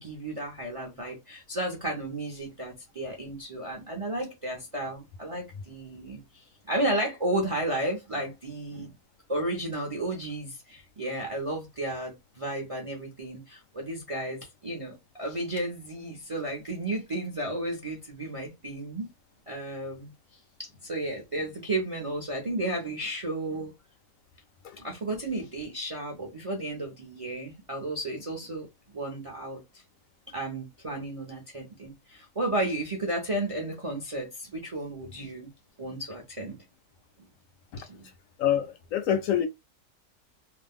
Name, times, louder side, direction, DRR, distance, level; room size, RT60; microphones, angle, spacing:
voice 1, 0.0-8.9 9.3-19.1 19.5-20.1 20.6-23.7 24.8-28.7 28.9-29.6 30.3-35.5 35.8-36.6 37.9-38.0, right 1 dB, 40° right, 0.5 m, -33 dB
voice 2, 38.4-39.5, left 10 dB, 70° left, 0.9 m, -26 dB
2.6 x 2.1 x 3.5 m
omnidirectional pair, 1.6 m